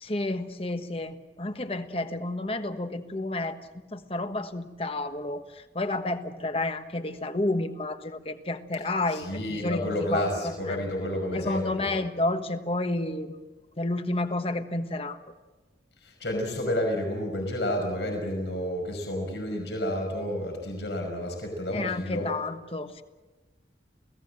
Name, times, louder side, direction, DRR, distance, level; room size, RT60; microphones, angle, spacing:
voice 1, 0.0-3.6 3.9-9.8 10.1-10.8 11.3-13.4 13.8-15.2 21.7-23.0, left 2 dB, 30° left, 8 dB, 1.3 m, -30 dB
voice 2, 9.1-11.9 16.0-22.3, left 1 dB, 80° left, 2 dB, 5.5 m, -30 dB
29.0 x 17.5 x 7.6 m, 1.2 s
head